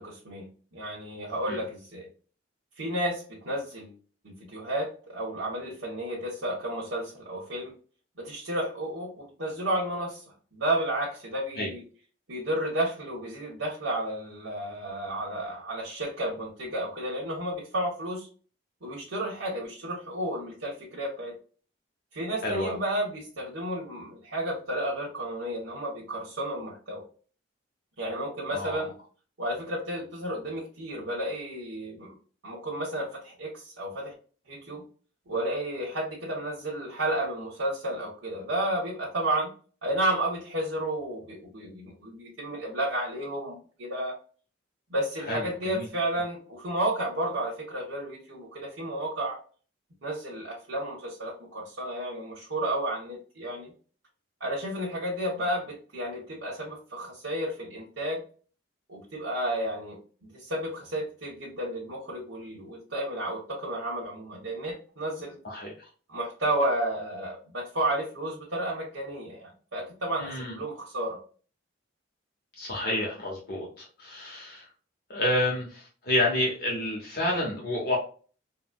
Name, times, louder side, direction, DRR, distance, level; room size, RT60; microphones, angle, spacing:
voice 1, 0.0-2.1 2.8-4.0 4.2-7.7 8.2-10.2 10.5-11.8 12.3-18.3 18.8-21.3 22.1-27.0 28.0-28.9 29.4-32.1 32.4-34.1 34.5-34.8 35.3-39.5 39.8-44.1 44.9-49.4 50.0-53.7 54.4-58.2 58.9-60.0 60.3-65.4 66.1-71.2, right 1 dB, 85° right, -4 dB, 1.1 m, -32 dB
voice 2, 22.4-22.8 28.5-28.8 45.3-45.9 65.4-65.7 70.2-70.6 72.6-74.6 75.1-78.0, left 1 dB, 50° left, -3 dB, 0.8 m, -29 dB
3.8 x 2.0 x 2.2 m, 0.40 s
head